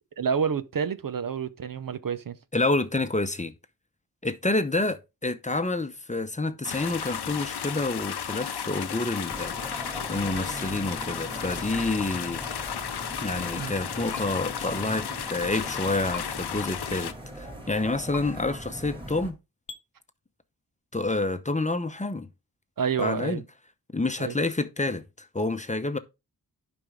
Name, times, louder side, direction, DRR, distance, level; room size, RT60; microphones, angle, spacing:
voice 1, 0.2-2.4 13.6-13.7 14.1-14.2 22.8-23.4 24.2-24.4, right 6 dB, 60° right, 0.7 m, -29 dB
voice 2, 2.5-3.5 4.2-12.4 13.2-19.4 20.9-22.3 23.0-23.4 23.9-26.0, left 2 dB, 20° left, 0.8 m, -28 dB
sound 1, 6.6-17.1, left 8 dB, 85° left, 0.8 m, -34 dB
sound 2, 9.3-19.3, equal, 15° right, 2.4 m, -40 dB
sound 3, 14.1-14.3 16.1-16.3 18.1-18.2 19.7-19.8, left 7 dB, 55° left, 1.0 m, -38 dB
11.0 x 5.3 x 3.6 m
wide cardioid pair, 85°, 39 cm